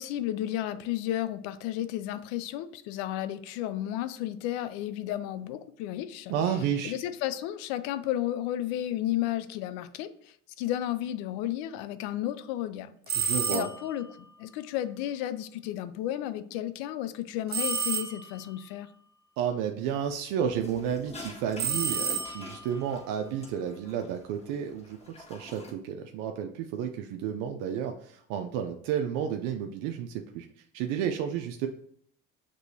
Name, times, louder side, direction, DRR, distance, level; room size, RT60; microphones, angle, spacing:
voice 1, 0.0-6.3 6.8-10.1 10.6-18.9, left 12 dB, 90° left, 13 dB, 0.5 m, -33 dB
voice 2, 6.3-6.9 13.1-13.7 19.4-25.0 25.3-30.5 30.7-31.7, right 8 dB, 80° right, 5 dB, 0.5 m, -31 dB
sound 1, 13.1-14.0 17.5-18.5 21.6-22.7, right 5 dB, 30° right, 0.7 m, -30 dB
sound 2, 20.5-25.7, left 2 dB, 20° left, 1.4 m, -47 dB
6.1 x 3.0 x 2.7 m, 0.67 s
supercardioid pair, 85°, 31 cm